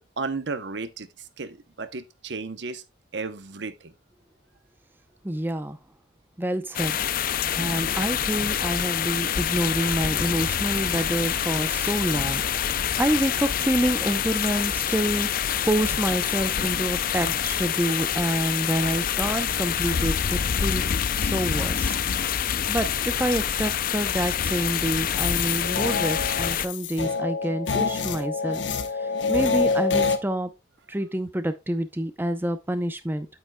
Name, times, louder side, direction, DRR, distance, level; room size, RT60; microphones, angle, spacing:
voice 1, 0.0-2.8 3.1-3.9, right 4 dB, 60° right, 0.8 m, -34 dB
voice 2, 5.2-5.8 6.4-7.0 7.5-20.8 21.2-22.0 22.7-28.6 28.9-30.5 30.9-33.3, right 1 dB, 10° right, 0.6 m, -27 dB
sound 1, 6.7-26.7, left 8 dB, 45° left, 0.4 m, -26 dB
sound 2, 25.1-30.2, left 4 dB, 70° left, 1.0 m, -26 dB
9.0 x 8.8 x 2.2 m
head